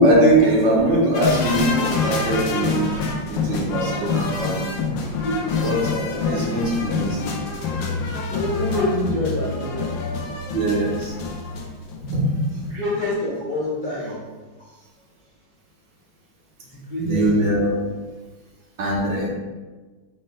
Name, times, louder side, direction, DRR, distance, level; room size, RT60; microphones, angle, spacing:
voice 1, 0.0-2.9 3.3-4.7 5.5-7.3 10.5-11.1 12.1-12.7 17.0-17.7 18.8-19.3, right 1 dB, 65° right, -3 dB, 1.5 m, -21 dB
sound 1, 1.1-12.3 12.6-12.7, left 4 dB, 75° left, 1.3 m, -26 dB
voice 2, 6.1-6.5 8.3-9.9 12.5-14.2 14.7-14.8 16.7-17.7, left 1 dB, 50° left, -9 dB, 0.6 m, -27 dB
4.4 x 4.2 x 2.2 m, 1.3 s
omnidirectional pair, 2.2 m